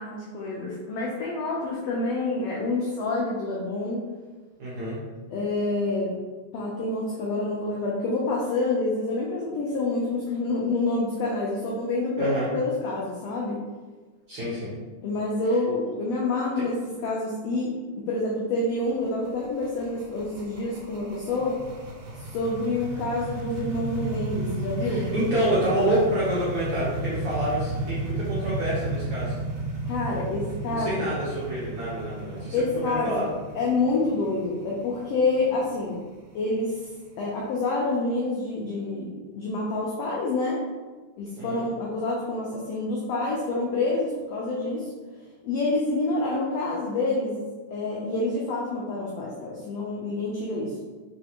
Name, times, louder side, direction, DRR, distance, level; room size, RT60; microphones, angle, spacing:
voice 1, 0.0-4.0 5.3-6.2 6.5-13.6 15.0-16.8 17.0-17.7 18.1-21.6 22.3-25.1 29.9-31.1 32.5-33.2 33.5-36.0 36.3-36.8 37.2-40.6 41.2-44.9 45.4-47.4 47.7-50.7, left 2 dB, 85° left, -4 dB, 1.4 m, -27 dB
voice 2, 4.6-5.0 12.2-12.5 14.3-14.7 16.6-16.7 24.8-29.3 30.7-33.3 41.4-41.7, right 1 dB, 65° right, -9 dB, 1.4 m, -28 dB
sound 1, 18.7-37.5, right 2 dB, 85° right, 2.2 m, -34 dB
4.4 x 3.2 x 2.9 m, 1.3 s
omnidirectional pair, 3.6 m